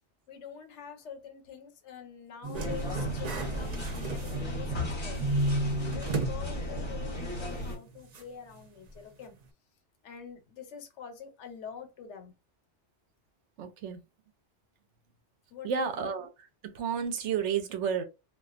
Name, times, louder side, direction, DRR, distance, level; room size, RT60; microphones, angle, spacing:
voice 1, 0.3-5.2 5.9-9.3 10.0-12.3 15.5-16.1, left 7 dB, 80° left, 1.0 m, -45 dB
sound 1, 2.4-4.9 5.2-6.4 6.8-6.9 8.1-8.2, right 2 dB, 55° right, 0.4 m, -32 dB
sound 2, 2.5-7.8, left 1 dB, 25° left, 1.0 m, -35 dB
voice 2, 13.6-14.0 15.6-16.3 16.6-18.0, right 7 dB, 80° right, 0.9 m, -31 dB
2.3 x 2.3 x 2.4 m
omnidirectional pair, 1.2 m